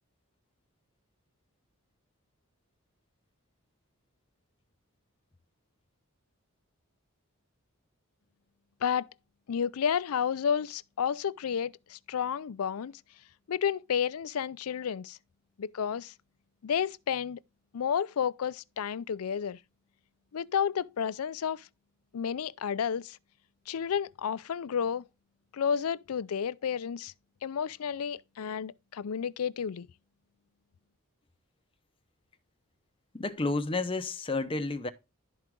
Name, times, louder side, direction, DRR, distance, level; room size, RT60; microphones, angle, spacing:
voice 1, 9.5-13.0 13.5-15.2 15.6-16.1 16.6-17.4 17.7-19.6 20.3-21.7 22.1-23.2 23.7-25.0 25.5-27.1 27.4-29.9, left 7 dB, 85° left, 0.4 m, -31 dB
voice 2, 33.1-34.9, left 3 dB, 25° left, 0.9 m, -31 dB
12.0 x 4.7 x 3.7 m
head